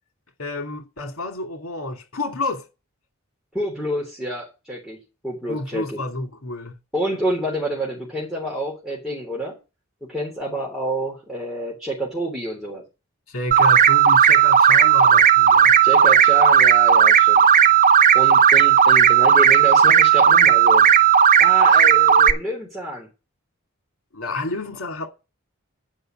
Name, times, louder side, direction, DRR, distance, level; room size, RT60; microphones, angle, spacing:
voice 1, 0.4-2.7 5.5-6.7 13.3-15.7 24.1-25.1, left 2 dB, 80° left, 2.3 m, -30 dB
voice 2, 3.5-6.0 6.9-9.6 10.1-12.8 15.8-17.4 18.1-20.9 21.4-23.1, right 1 dB, ahead, 3.5 m, -28 dB
sound 1, 13.5-22.3, right 8 dB, 40° right, 0.7 m, -14 dB
10.0 x 5.6 x 7.5 m
head